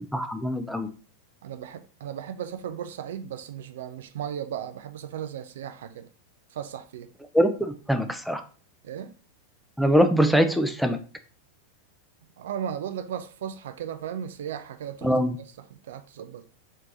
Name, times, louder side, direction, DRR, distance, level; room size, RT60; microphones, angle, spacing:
voice 1, 0.1-0.9 7.3-8.4 9.8-11.0 15.0-15.4, equal, ahead, 0.5 m, -23 dB
voice 2, 1.4-6.1 6.5-7.1 8.8-9.1 12.4-15.1 15.4-16.4, right 9 dB, 60° right, 0.4 m, -36 dB
4.4 x 3.1 x 2.6 m
figure-of-eight pair, 90°, 0 cm